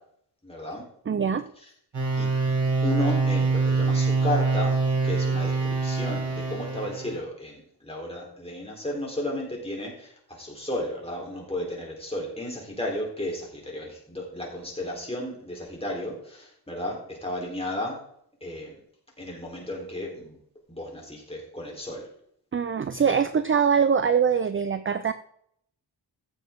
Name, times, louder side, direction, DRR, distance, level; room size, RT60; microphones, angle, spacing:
voice 1, 0.4-0.9 2.2-2.3 2.8-4.8 5.0-18.0 18.4-18.7 19.2-20.4 20.7-22.1 23.0-23.3, left 1 dB, 15° left, -2 dB, 3.8 m, -33 dB
voice 2, 1.1-1.5 22.5-25.1, right 7 dB, 30° right, 12 dB, 0.5 m, -23 dB
sound 1, 1.9-7.2, right 4 dB, 85° right, 4.6 m, -24 dB
15.0 x 7.5 x 3.7 m, 0.67 s
wide cardioid pair, 140°, 42 cm